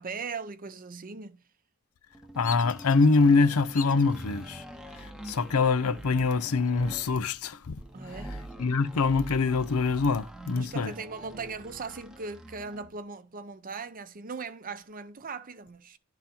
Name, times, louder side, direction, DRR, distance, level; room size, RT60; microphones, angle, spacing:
voice 1, 0.0-1.4 7.9-8.3 10.5-16.0, right 4 dB, 40° right, 0.7 m, -39 dB
sound 1, 2.1-12.9, right 1 dB, 5° right, 0.8 m, -44 dB
voice 2, 2.4-4.6 5.0-7.8 8.0-8.2 8.6-10.9, left 4 dB, 80° left, 0.6 m, -24 dB
Bird vocalization bird call bird song, 2.4-3.2 3.7-4.2 4.7-5.2 6.4-7.2 7.5-7.6 8.1-9.5, left 8 dB, 40° left, 0.7 m, -44 dB
11.5 x 3.9 x 4.3 m
head